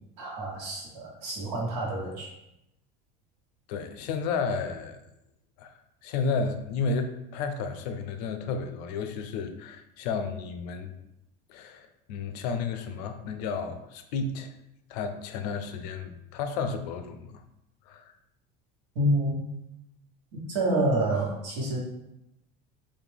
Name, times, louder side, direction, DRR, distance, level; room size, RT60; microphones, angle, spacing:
voice 1, 0.2-2.3 18.9-19.4 20.3-21.8, right 1 dB, 80° right, -2 dB, 1.5 m, -28 dB
voice 2, 3.7-5.0 5.6-10.9 11.5-14.5 14.9-17.4 17.9-18.1, left 4 dB, 85° left, 8 dB, 0.5 m, -32 dB
4.2 x 2.6 x 3.5 m, 0.85 s
cardioid pair, 160°, 20 cm